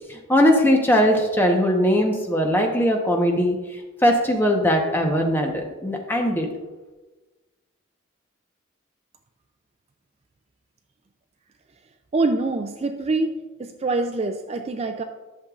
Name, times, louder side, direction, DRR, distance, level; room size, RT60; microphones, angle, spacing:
voice 1, 0.1-3.6 4.0-6.5, equal, 10° left, 2 dB, 0.9 m, -20 dB
voice 2, 12.1-13.3 13.6-15.0, right 3 dB, 30° right, 6 dB, 0.3 m, -25 dB
11.0 x 6.6 x 2.4 m, 1.2 s
head